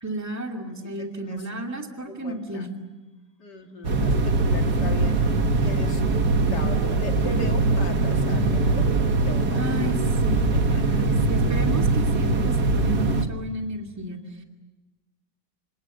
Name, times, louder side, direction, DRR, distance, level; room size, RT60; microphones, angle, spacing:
voice 1, 0.0-2.7 9.6-14.4, right 1 dB, 10° right, 2 dB, 2.4 m, -33 dB
voice 2, 1.0-1.4 2.0-2.7 3.4-9.9 10.5-11.1, left 2 dB, 60° left, 3 dB, 2.9 m, -39 dB
sound 1, 3.8-13.2, right 3 dB, 55° right, 2.1 m, -22 dB
27.5 x 26.5 x 7.8 m, 1.1 s
omnidirectional pair, 2.1 m